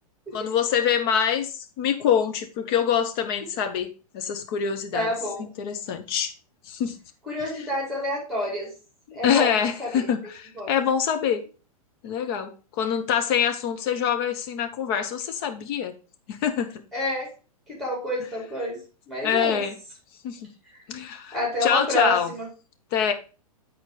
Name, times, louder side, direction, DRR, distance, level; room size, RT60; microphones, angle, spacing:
voice 1, 0.3-5.1 5.4-6.3 6.6-7.0 9.1-11.5 12.0-12.5 12.8-16.0 16.3-16.8 19.2-19.8 20.2-20.5 20.9-22.3 22.9-23.1, left 8 dB, 40° left, 1.1 m, -25 dB
voice 2, 4.9-5.4 7.3-8.7 9.1-10.1 10.6-10.7 16.9-17.3 17.7-18.8 19.1-19.6 21.3-22.5, left 1 dB, ahead, 4.9 m, -28 dB
9.1 x 4.4 x 4.8 m
figure-of-eight pair, 105°, 19 cm